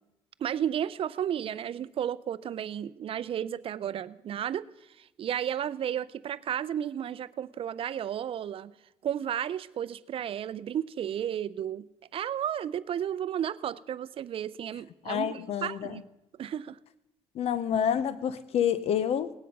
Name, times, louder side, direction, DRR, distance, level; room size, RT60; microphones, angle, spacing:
voice 1, 0.4-4.7 5.0-8.7 9.0-11.8 12.1-16.0 16.4-16.8, right 9 dB, 55° right, 17 dB, 0.5 m, -33 dB
voice 2, 15.0-16.0 17.3-19.3, left 9 dB, 70° left, 15 dB, 0.8 m, -28 dB
18.0 x 10.0 x 5.4 m, 0.92 s
cardioid pair, 80°, 11 cm